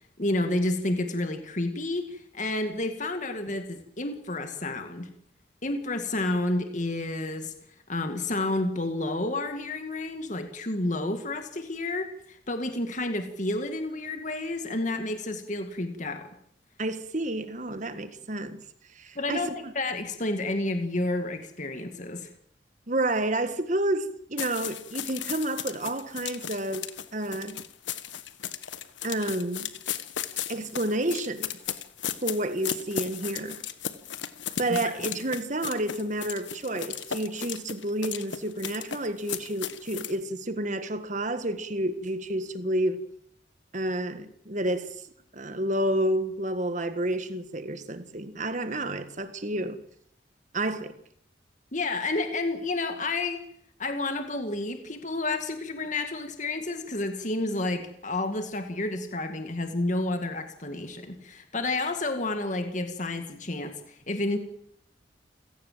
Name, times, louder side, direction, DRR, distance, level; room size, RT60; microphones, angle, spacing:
voice 1, 0.0-5.1 5.6-7.5 7.9-16.3 19.2-22.3 35.0-35.1 51.7-53.4 53.8-64.4, left 2 dB, 40° left, 2.1 m, -30 dB
voice 2, 16.8-18.6 18.9-19.7 22.9-27.6 29.0-29.7 30.5-31.6 32.2-33.6 34.6-43.1 43.7-44.9 45.3-49.8 50.5-50.9, right 1 dB, 40° right, 1.7 m, -30 dB
sound 1, 24.4-40.2, left 9 dB, 75° left, 1.4 m, -36 dB
28.0 x 17.5 x 7.5 m
head